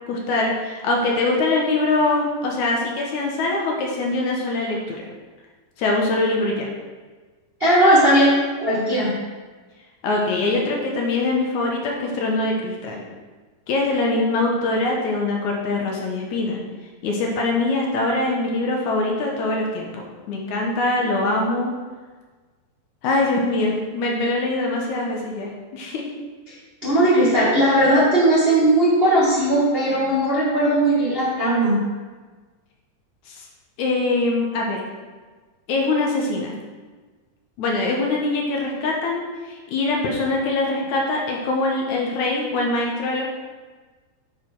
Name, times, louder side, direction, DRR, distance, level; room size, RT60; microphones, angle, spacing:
voice 1, 0.1-5.1 5.8-6.7 10.0-13.0 13.7-16.6 17.0-21.7 23.0-26.1 33.3-33.5 33.8-34.8 35.7-36.5 37.6-43.2, left 2 dB, 70° left, -1 dB, 1.8 m, -23 dB
voice 2, 7.6-9.1 26.5-26.6 26.8-31.8, right 1 dB, 80° right, -8 dB, 0.5 m, -18 dB
11.0 x 4.9 x 4.6 m, 1.4 s
omnidirectional pair, 4.8 m